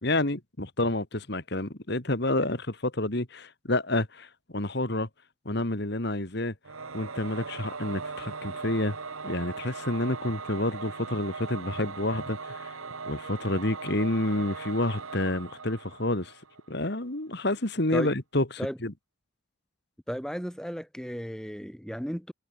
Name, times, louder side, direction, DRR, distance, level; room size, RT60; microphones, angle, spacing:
voice 1, 0.0-5.1 5.5-6.5 6.9-9.0 9.2-12.8 13.1-16.4 16.7-18.5 18.8-18.9, left 1 dB, 55° left, 2.2 m, -29 dB
Singing / Musical instrument, 6.6-16.7, right 4 dB, 90° right, 1.7 m, -39 dB
voice 2, 20.1-22.3, equal, 5° left, 3.3 m, -34 dB
head